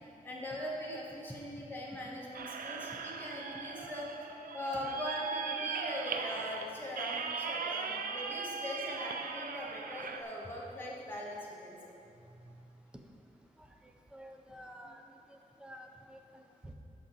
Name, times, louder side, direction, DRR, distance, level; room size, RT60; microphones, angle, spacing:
voice 1, 0.2-4.1 4.5-12.6 14.8-14.9, left 1 dB, 15° left, -5 dB, 1.5 m, -41 dB
sound 1, 2.3-10.2, right 5 dB, 80° right, 0.4 m, -39 dB
voice 2, 14.1-15.0 15.3-16.7, equal, 5° right, 3 dB, 0.6 m, -51 dB
6.3 x 5.3 x 6.1 m, 2.7 s
wide cardioid pair, 125°, 15 cm